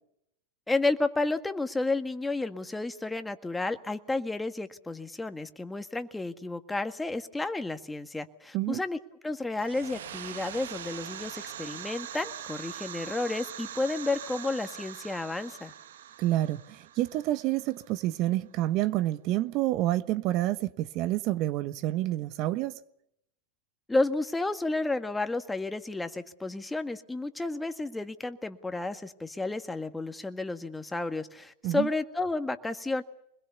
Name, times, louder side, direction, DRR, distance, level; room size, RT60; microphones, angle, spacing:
voice 1, 0.7-9.0 9.2-15.7 23.9-33.0, left 2 dB, 10° left, 1.7 m, -31 dB
sound 1, 9.5-18.1, right 10 dB, 80° right, 1.3 m, -42 dB
voice 2, 16.2-22.8 31.6-31.9, right 15 dB, 50° right, 1.1 m, -28 dB
25.5 x 21.0 x 7.0 m
hypercardioid pair, 105°, 0 cm